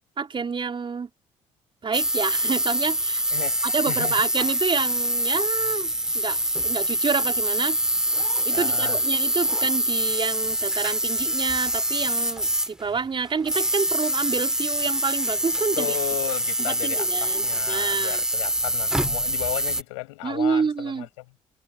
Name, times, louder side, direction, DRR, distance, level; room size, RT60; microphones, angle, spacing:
voice 1, 0.2-1.1 1.8-3.2 3.6-6.4 6.6-7.8 8.4-15.9 16.6-18.2 20.2-21.1, right 5 dB, 30° right, 4.3 m, -28 dB
sound 1, 1.9-13.0 13.4-19.8, right 1 dB, 5° right, 2.8 m, -25 dB
voice 2, 3.3-4.2 8.5-9.0 15.8-21.3, left 24 dB, 70° left, 7.2 m, -34 dB
figure-of-eight pair, 45°, 16 cm